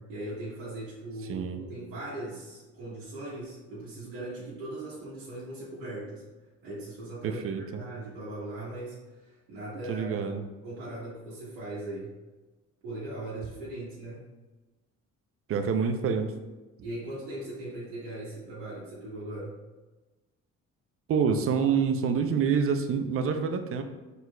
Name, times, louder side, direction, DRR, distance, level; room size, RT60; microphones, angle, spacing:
voice 1, 0.0-6.2 6.6-10.3 10.6-12.1 12.8-14.2 16.8-19.6, right 1 dB, 85° right, -9 dB, 1.3 m, -39 dB
voice 2, 1.3-1.6 7.2-7.8 9.9-10.4 15.5-16.3 21.1-23.8, right 6 dB, 45° right, 7 dB, 0.5 m, -27 dB
4.5 x 4.0 x 2.2 m, 1.2 s
cardioid pair, 90°, 31 cm